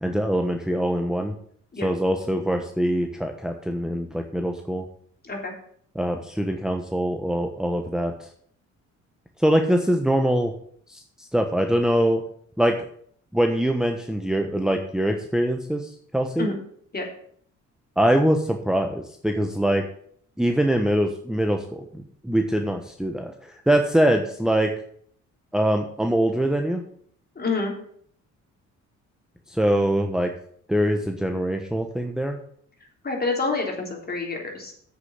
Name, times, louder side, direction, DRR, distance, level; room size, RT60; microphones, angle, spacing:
voice 1, 0.0-1.3 1.8-4.8 5.9-8.1 9.4-10.5 10.9-12.2 12.6-12.9 13.3-16.5 18.0-19.9 20.4-23.3 23.7-24.7 25.5-26.8 29.5-30.3 30.7-32.4, right 1 dB, ahead, 4 dB, 1.1 m, -23 dB
voice 2, 27.4-27.7 33.0-34.7, left 3 dB, 30° left, 1 dB, 3.7 m, -27 dB
8.1 x 6.8 x 7.7 m, 0.62 s
cardioid pair, 90°, 30 cm